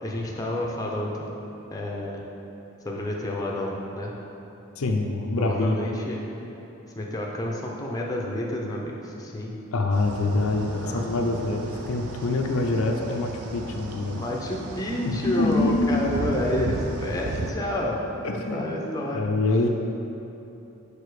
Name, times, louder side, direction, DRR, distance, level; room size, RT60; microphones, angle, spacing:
voice 1, 0.0-1.3 1.7-2.3 2.8-4.2 5.4-6.2 7.0-9.6 10.8-11.1 14.1-19.3, left 1 dB, 15° left, -2 dB, 0.6 m, -29 dB
voice 2, 4.8-5.8 9.7-14.2 15.0-16.0 18.2-18.6 19.1-19.7, left 2 dB, 70° left, 2 dB, 0.5 m, -25 dB
sound 1, 9.9-17.5, right 2 dB, 75° right, 0.6 m, -35 dB
6.8 x 4.9 x 4.8 m, 3.0 s
head